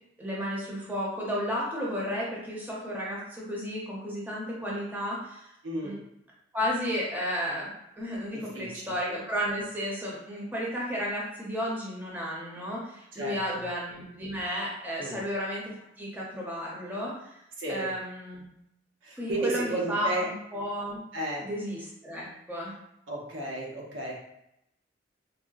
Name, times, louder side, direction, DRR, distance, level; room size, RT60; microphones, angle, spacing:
voice 1, 0.2-5.5 5.8-5.9 6.5-7.7 8.0-15.6 16.0-17.4 17.7-18.4 19.2-21.0 21.4-22.7, equal, 10° right, -5 dB, 0.7 m, -33 dB
voice 2, 5.6-6.0 8.3-8.8 13.1-13.6 15.0-15.2 17.6-17.9 19.0-20.3 21.1-21.5 23.1-24.2, right 1 dB, 90° right, -3 dB, 0.7 m, -33 dB
3.7 x 2.0 x 2.3 m, 0.82 s
head